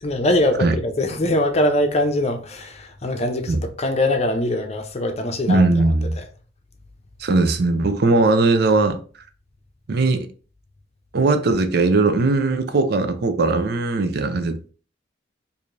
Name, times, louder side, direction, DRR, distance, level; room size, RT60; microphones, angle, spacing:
voice 1, 0.0-5.6, left 1 dB, 35° left, 0.6 m, -22 dB
voice 2, 5.5-6.1 7.2-9.0 9.9-10.3 11.1-14.7, right 3 dB, 60° right, 0.5 m, -19 dB
4.7 x 2.6 x 2.5 m
head